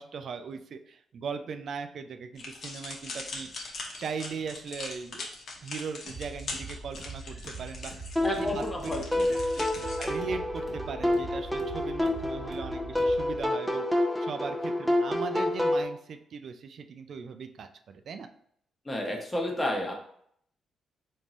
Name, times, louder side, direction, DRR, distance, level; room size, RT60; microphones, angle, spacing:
voice 1, 0.0-3.5 4.0-5.3 5.6-8.9 9.6-18.3, right 5 dB, 60° right, 7 dB, 0.4 m, -39 dB
sound 1, 2.4-10.1, left 3 dB, 60° left, 0.9 m, -41 dB
sound 2, 6.1-13.4, right 3 dB, 30° right, 1.1 m, -43 dB
voice 2, 8.2-9.3 18.8-19.9, left 1 dB, 20° left, 1 dB, 1.0 m, -31 dB
sound 3, 8.2-15.8, left 1 dB, ahead, 0.7 m, -29 dB
3.6 x 2.7 x 3.0 m, 0.66 s
supercardioid pair, 65°, 0 cm